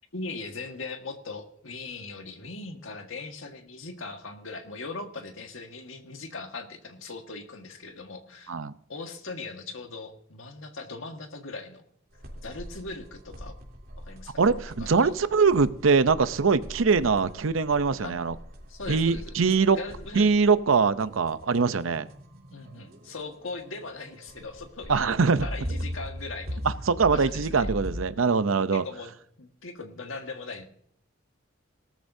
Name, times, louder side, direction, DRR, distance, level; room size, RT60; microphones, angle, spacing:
voice 1, 0.1-8.6 8.9-11.8 12.4-13.5 14.0-14.4 14.8-15.1 18.0-18.2 18.7-19.3 19.7-20.3 22.5-25.1 25.4-26.6 27.1-27.7 28.7-29.1 29.4-30.7, left 3 dB, 85° left, 5 dB, 1.7 m, -39 dB
sound 1, 12.1-28.0, equal, 50° right, 3.2 m, -40 dB
voice 2, 14.4-18.3 18.9-19.8 20.1-22.1 24.9-25.5 26.6-28.8, right 5 dB, 80° right, 13 dB, 0.7 m, -23 dB
18.5 x 13.0 x 2.7 m, 0.66 s
head